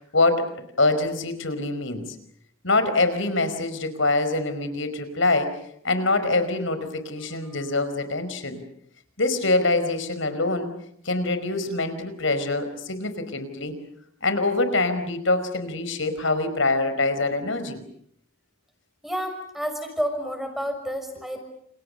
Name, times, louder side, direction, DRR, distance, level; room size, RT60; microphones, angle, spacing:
voice 1, 0.1-0.5 0.8-2.1 2.6-5.5 5.8-8.6 9.2-10.7 11.0-13.7 14.2-17.8, left 2 dB, 70° left, 10 dB, 5.0 m, -24 dB
voice 2, 19.0-21.4, equal, ahead, 5 dB, 6.0 m, -30 dB
29.5 x 29.0 x 6.7 m, 0.70 s
head